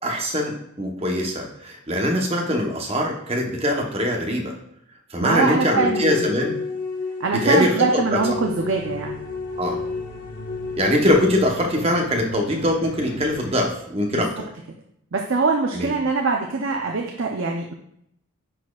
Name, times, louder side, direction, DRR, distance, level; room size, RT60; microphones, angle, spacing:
voice 1, 0.0-4.5 5.1-6.5 7.3-8.2 9.6-9.8 10.8-14.5 15.7-15.9, left 1 dB, 30° right, 1 dB, 0.9 m, -22 dB
voice 2, 5.2-6.3 7.2-9.2 14.1-14.3 15.1-17.7, right 4 dB, 65° right, 1 dB, 0.6 m, -23 dB
sound 1, 5.3-11.1, left 4 dB, 80° left, 1.3 m, -31 dB
sound 2, 8.0-13.7, right 1 dB, 60° left, 0.9 m, -40 dB
9.9 x 4.2 x 2.3 m, 0.74 s
head